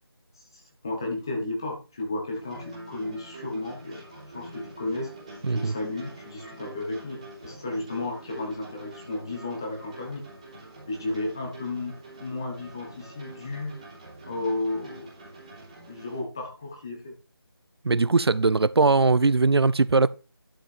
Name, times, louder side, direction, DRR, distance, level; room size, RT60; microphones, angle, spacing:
voice 1, 0.5-5.1 5.5-10.2 10.9-13.7 14.2-15.2 15.9-17.1, left 2 dB, 10° left, 1.1 m, -33 dB
sound 1, 2.3-16.2, right 2 dB, 15° right, 3.0 m, -45 dB
voice 2, 5.4-5.7 17.8-20.1, right 3 dB, 85° right, 0.6 m, -20 dB
11.5 x 5.7 x 4.3 m
figure-of-eight pair, 175°, 13 cm